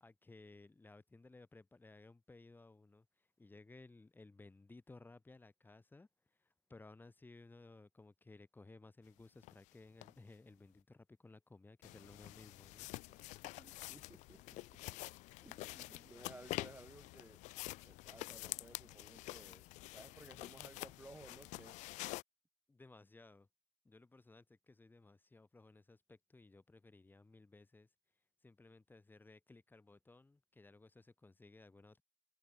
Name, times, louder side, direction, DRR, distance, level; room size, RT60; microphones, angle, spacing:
voice 1, 0.0-6.1 6.4-12.9 15.7-16.3 22.7-23.5 23.8-27.9 28.4-32.0, left 3 dB, 15° left, 0.9 m, -59 dB
sound 1, 9.4-9.5 10.0-10.1 11.8-22.2, left 20 dB, 85° left, 0.5 m, -48 dB
voice 2, 13.1-14.8 15.4-17.4 17.8-21.8, right 2 dB, 15° right, 0.8 m, -58 dB
supercardioid pair, 80°, 12 cm